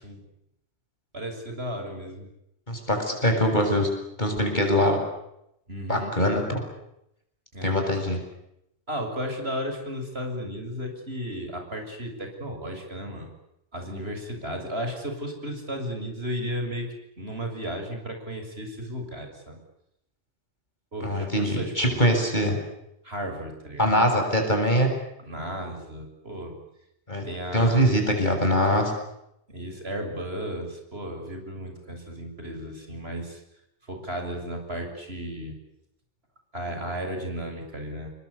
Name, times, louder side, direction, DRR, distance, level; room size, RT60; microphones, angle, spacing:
voice 1, 1.1-2.3 5.7-6.1 7.5-7.7 8.9-13.3 13.7-16.9 17.2-19.6 20.9-22.0 23.0-24.0 25.2-26.6 27.2-27.9 29.5-33.4 33.9-35.6 36.5-38.1, equal, 60° right, 4 dB, 7.1 m, -34 dB
voice 2, 2.7-3.9 4.2-5.0 5.9-6.6 7.6-8.2 21.0-22.6 23.8-24.9 27.1-27.2 27.5-28.9, equal, 40° left, 3 dB, 7.6 m, -23 dB
30.0 x 22.5 x 8.4 m, 0.81 s
omnidirectional pair, 1.2 m